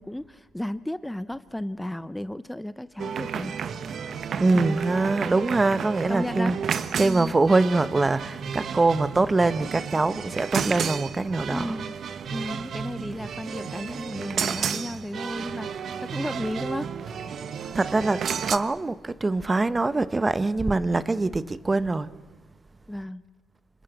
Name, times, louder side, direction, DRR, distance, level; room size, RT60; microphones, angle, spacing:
voice 1, 0.0-3.5 4.5-4.8 6.1-6.6 7.0-7.3 11.5-12.0 12.3-16.9 22.9-23.2, left 1 dB, 5° left, 0.7 m, -34 dB
sound 1, 3.0-18.6, right 7 dB, 60° right, 1.3 m, -32 dB
voice 2, 4.4-11.8 17.7-22.1, right 3 dB, 20° right, 1.0 m, -24 dB
27.0 x 21.0 x 8.0 m
cardioid pair, 90°, 0 cm